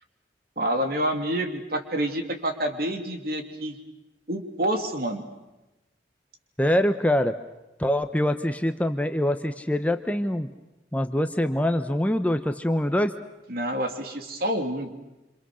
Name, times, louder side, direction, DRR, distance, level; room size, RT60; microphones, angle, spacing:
voice 1, 0.6-3.8 4.3-5.2 13.5-14.9, right 1 dB, 55° right, 5 dB, 3.0 m, -28 dB
voice 2, 6.6-7.4 7.8-10.5 10.9-13.1, left 1 dB, 10° left, 8 dB, 0.8 m, -24 dB
28.0 x 27.0 x 6.4 m, 1.0 s
head